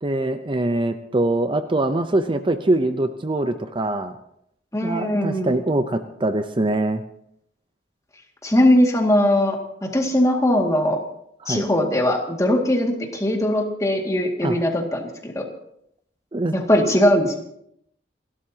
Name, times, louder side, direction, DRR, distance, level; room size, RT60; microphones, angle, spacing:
voice 1, 0.0-4.1 4.8-7.0 11.4-11.7 14.4-14.6 16.3-16.5, right 2 dB, 30° right, 9 dB, 0.6 m, -23 dB
voice 2, 4.7-5.5 8.4-11.0 11.5-15.4 16.5-17.4, left 1 dB, 20° left, 2 dB, 2.1 m, -20 dB
29.0 x 12.5 x 2.9 m, 0.74 s
head